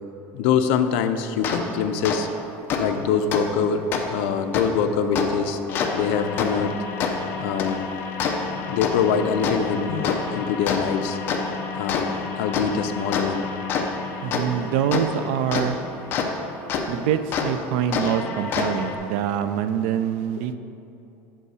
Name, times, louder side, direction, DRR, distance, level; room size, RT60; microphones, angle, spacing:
voice 1, 0.3-2.3 2.8-5.6 5.9-6.8 7.4-7.9 8.6-11.2 11.7-13.5, left 7 dB, 75° left, 8 dB, 0.5 m, -24 dB
sound 1, 1.4-1.6 2.0-2.2 2.7-2.8 3.3-3.4 3.9-4.0 4.5-4.6 5.1-5.3 5.7-16.3 16.7-16.8 17.3-17.5 17.9-19.0, left 5 dB, 35° left, 0.6 m, -27 dB
voice 2, 14.2-15.8 16.9-20.6, right 9 dB, 75° right, 11 dB, 0.4 m, -25 dB
7.4 x 5.4 x 4.8 m, 2.8 s
cardioid pair, 180°, 6 cm